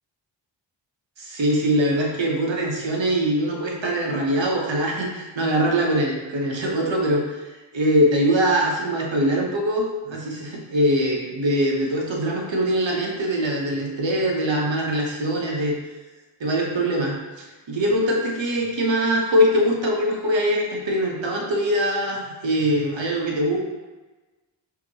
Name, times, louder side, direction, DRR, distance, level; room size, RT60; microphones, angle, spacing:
voice 1, 1.2-7.4 7.7-15.7 16.4-23.6, equal, 70° right, -1 dB, 1.1 m, -22 dB
5.8 x 2.9 x 2.9 m, 1.2 s
cardioid pair, 50°, 47 cm